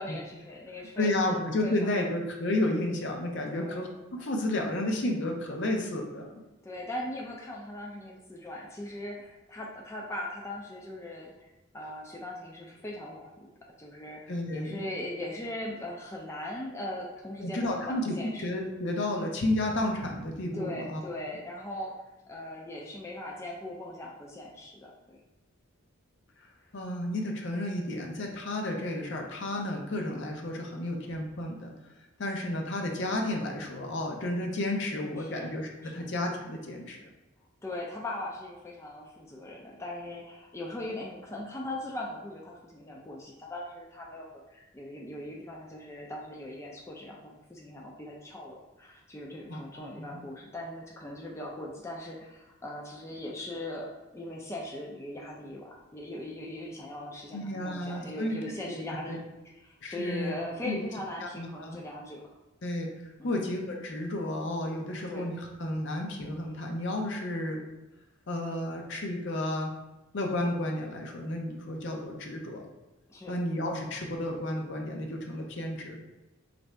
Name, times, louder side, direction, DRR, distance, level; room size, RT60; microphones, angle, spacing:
voice 1, 0.0-2.0 3.5-3.8 4.2-4.3 6.6-11.5 11.7-13.3 13.8-18.4 20.5-21.9 22.3-25.2 31.0-31.3 35.2-36.1 37.6-53.9 54.1-59.2 59.6-62.2 63.2-63.4 65.1-65.2 73.1-73.3, left 1 dB, 15° left, -2 dB, 0.4 m, -40 dB
voice 2, 1.0-6.3 14.3-14.9 17.4-21.0 26.7-31.7 32.2-37.0 49.5-49.6 50.1-50.2 57.3-58.4 58.7-59.2 59.8-60.3 60.6-60.8 61.2-61.8 62.6-67.6 68.3-69.7 70.1-72.6 73.3-76.0, left 1 dB, 60° left, 2 dB, 0.6 m, -32 dB
3.1 x 2.6 x 4.4 m, 1.1 s
head